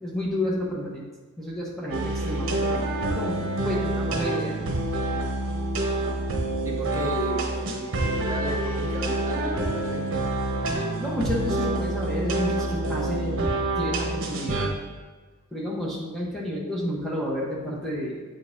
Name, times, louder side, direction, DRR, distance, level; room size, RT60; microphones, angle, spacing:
voice 1, 0.0-1.0 1.4-4.6 11.0-14.7 15.5-18.2, left 1 dB, ahead, -5 dB, 1.0 m, -31 dB
sound 1, 1.9-14.7, right 2 dB, 60° right, 1.0 m, -27 dB
voice 2, 6.6-10.3, right 1 dB, 15° right, -1 dB, 0.7 m, -34 dB
8.3 x 5.2 x 2.6 m, 1.4 s
head